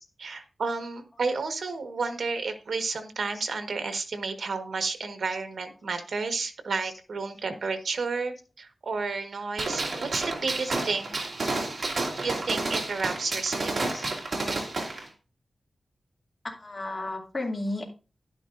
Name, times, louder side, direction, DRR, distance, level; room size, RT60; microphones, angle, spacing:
voice 1, 0.2-11.3 12.2-13.7, right 4 dB, 75° right, 7 dB, 1.4 m, -31 dB
Gunshot gunfire, 9.6-15.0, right 2 dB, 50° right, 2.2 m, -30 dB
voice 2, 10.6-11.0 13.9-14.0 16.4-17.9, left 2 dB, 30° left, -1 dB, 2.5 m, -35 dB
11.5 x 9.8 x 2.6 m, 0.33 s
wide cardioid pair, 140°, 0 cm